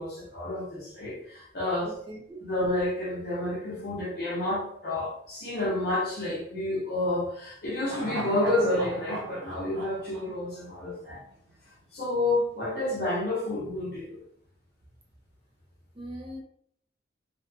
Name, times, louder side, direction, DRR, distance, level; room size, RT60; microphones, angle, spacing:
voice 1, 0.0-1.9 2.4-11.2 11.9-14.2, left 1 dB, 55° left, -5 dB, 0.9 m, -29 dB
voice 2, 1.8-2.4 15.9-16.4, right 1 dB, 30° right, -1 dB, 0.5 m, -41 dB
sound 1, 7.8-11.2 11.5-11.6, right 2 dB, 85° right, 0.6 m, -38 dB
2.6 x 2.2 x 2.7 m, 0.68 s
head